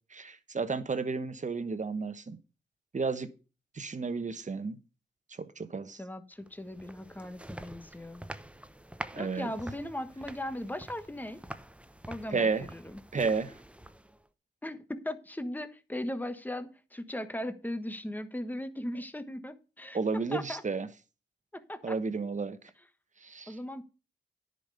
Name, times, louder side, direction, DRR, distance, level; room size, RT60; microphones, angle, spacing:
voice 1, 0.1-2.4 2.9-3.3 3.7-4.8 5.4-6.0 9.1-9.5 12.3-12.7 13.1-13.5 19.9-20.9 21.8-22.6 23.2-23.6, right 4 dB, 40° right, 1.2 m, -32 dB
voice 2, 6.0-8.2 9.2-11.4 12.1-13.0 14.6-20.6 21.5-22.0 23.5-23.8, left 1 dB, 10° left, 1.2 m, -38 dB
sound 1, 6.5-14.3, right 1 dB, 5° right, 0.8 m, -46 dB
10.0 x 5.5 x 6.7 m
cardioid pair, 55°, 19 cm